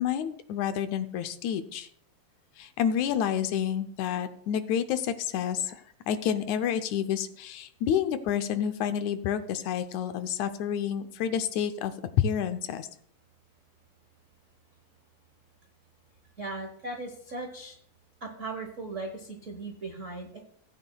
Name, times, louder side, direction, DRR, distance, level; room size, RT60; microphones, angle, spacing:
voice 1, 0.0-1.9 2.6-12.9, left 9 dB, 80° left, 9 dB, 2.0 m, -29 dB
voice 2, 16.4-17.7 18.2-20.4, right 2 dB, 75° right, 2 dB, 0.7 m, -38 dB
17.5 x 9.2 x 2.3 m, 0.63 s
omnidirectional pair, 3.4 m